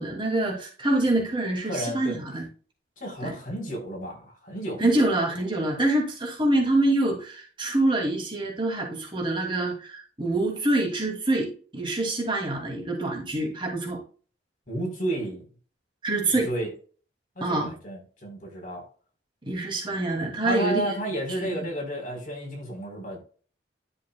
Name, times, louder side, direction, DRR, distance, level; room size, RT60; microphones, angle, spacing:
voice 1, 0.0-2.4 3.2-3.3 4.8-14.0 16.0-16.5 17.4-17.7 19.4-20.9 21.4-21.7, right 2 dB, 25° right, 2.4 m, -26 dB
voice 2, 1.6-2.2 3.0-4.9 14.7-15.5 16.4-16.7 17.4-18.8 20.4-23.2, right 1 dB, 45° left, 3.8 m, -32 dB
11.0 x 7.2 x 2.2 m
head